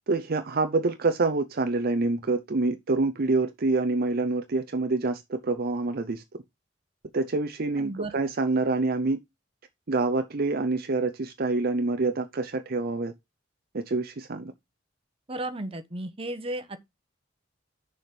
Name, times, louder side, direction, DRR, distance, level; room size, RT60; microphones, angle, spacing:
voice 1, 0.1-6.2 7.1-9.2 9.9-13.1 13.7-14.5, right 3 dB, 50° right, 0.7 m, -26 dB
voice 2, 7.8-8.2 15.3-16.8, right 1 dB, 30° right, 1.1 m, -34 dB
6.7 x 5.0 x 5.9 m
head